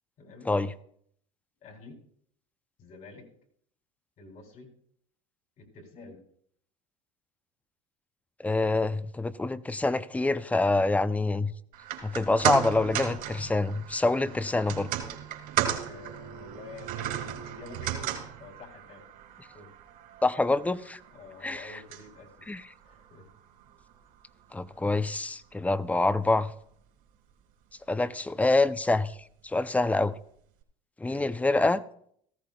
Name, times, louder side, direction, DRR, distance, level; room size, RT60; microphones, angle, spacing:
voice 1, 0.2-0.5 1.6-2.0 2.8-3.3 4.2-4.7 5.6-6.2 15.9-18.1 18.4-19.0 19.4-19.7 21.1-22.5 22.8-23.3 28.0-28.2 31.0-31.3, left 3 dB, 50° left, 2 dB, 3.3 m, -48 dB
voice 2, 8.4-11.5 12.0-14.9 20.2-21.0 21.4-21.8 22.5-22.6 24.5-26.5 27.9-29.2 29.4-30.2 31.0-31.8, left 2 dB, 10° left, 14 dB, 0.5 m, -26 dB
sound 1, 11.7-24.1 24.4-24.5, right 11 dB, 65° right, 2.7 m, -35 dB
17.0 x 14.0 x 2.3 m, 0.66 s
supercardioid pair, 105°, 17 cm